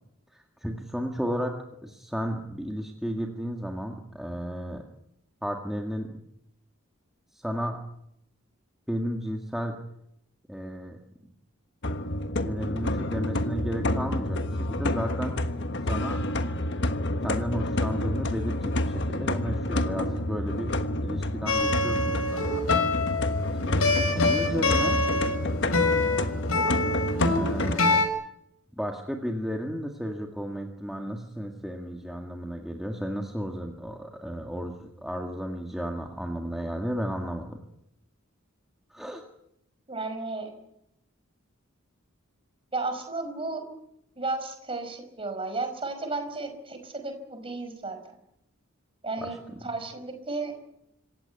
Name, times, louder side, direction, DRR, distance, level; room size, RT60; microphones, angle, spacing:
voice 1, 0.3-1.6 1.8-4.8 5.4-6.1 7.3-7.8 8.9-9.8 10.5-11.0 12.4-15.3 15.9-16.2 17.2-20.7 21.0-22.6 23.6-25.0 27.3-28.0 28.7-37.6 38.9-39.2 49.2-49.6, equal, ahead, 1 dB, 1.9 m, -33 dB
sound 1, 11.8-27.7, left 1 dB, 55° left, 1.4 m, -29 dB
sound 2, 21.5-28.1, left 3 dB, 90° left, 5.7 m, -26 dB
voice 2, 39.9-40.5 42.7-43.6 44.2-48.0 49.0-49.4 49.6-50.5, right 3 dB, 25° right, 7 dB, 5.1 m, -33 dB
26.5 x 15.5 x 9.4 m, 0.79 s
head